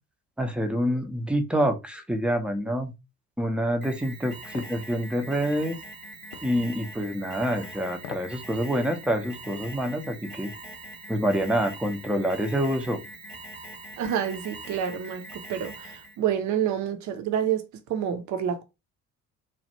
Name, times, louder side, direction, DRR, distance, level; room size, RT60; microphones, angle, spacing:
voice 1, 0.4-2.9 3.4-5.8 6.4-10.5 11.1-13.0, equal, 5° right, 0.5 m, -27 dB
Alarm, 3.8-16.2, right 2 dB, 85° right, 1.1 m, -43 dB
sound 1, 4.5-4.8 6.3-6.5 7.9-8.4 8.8-8.9, left 9 dB, 50° left, 0.5 m, -41 dB
voice 2, 14.0-15.2 15.5-17.6 17.9-18.6, right 9 dB, 45° right, 0.7 m, -28 dB
3.2 x 2.4 x 2.7 m
figure-of-eight pair, 50°, 41 cm